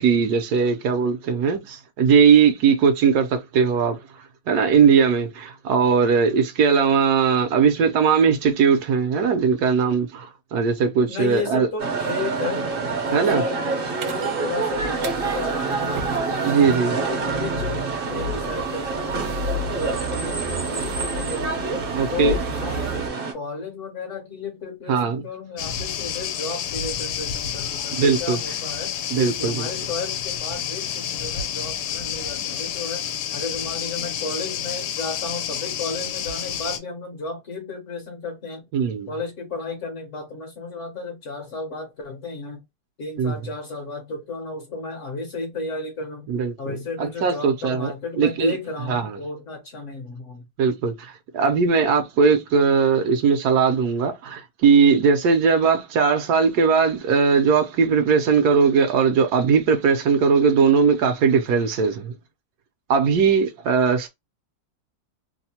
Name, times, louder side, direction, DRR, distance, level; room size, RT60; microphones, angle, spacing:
voice 1, 0.0-4.0 4.5-11.7 13.1-13.4 16.4-16.9 21.9-22.4 24.9-25.2 27.9-28.4 29.1-29.7 38.7-39.1 43.2-43.3 46.3-46.5 47.0-48.5 48.9-49.2 50.6-62.1 62.9-64.1, right 5 dB, 75° right, 1.1 m, -19 dB
voice 2, 11.1-12.7 13.1-16.1 16.6-21.5 22.1-23.0 23.3-28.9 29.4-38.7 39.1-42.7 43.0-46.3 46.6-50.5, left 3 dB, 60° left, 0.9 m, -33 dB
sound 1, 11.8-23.3, right 4 dB, 50° right, 0.7 m, -27 dB
sound 2, 14.0-23.1, equal, 90° right, 0.6 m, -33 dB
sound 3, 25.6-36.8, left 9 dB, 80° left, 1.1 m, -29 dB
3.0 x 2.0 x 2.7 m
omnidirectional pair, 1.8 m